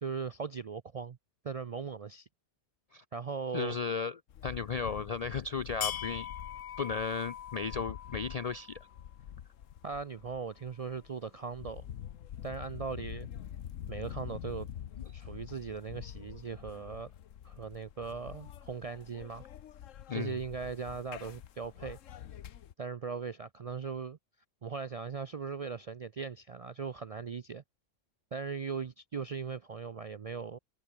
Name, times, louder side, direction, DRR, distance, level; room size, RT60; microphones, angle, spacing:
voice 1, 0.0-1.2 1.4-2.3 3.1-3.8 9.8-11.8 12.4-13.3 13.9-14.7 15.1-17.1 17.4-19.4 20.1-22.0 22.8-24.2 24.6-27.6 28.3-30.6, right 5 dB, 55° right, 0.4 m, -39 dB
voice 2, 3.5-4.1 4.4-6.3 6.8-8.8 20.1-20.4, left 5 dB, 60° left, 0.4 m, -35 dB
sound 1, 4.3-22.7, left 10 dB, 90° left, 1.2 m, -44 dB
omnidirectional pair, 1.3 m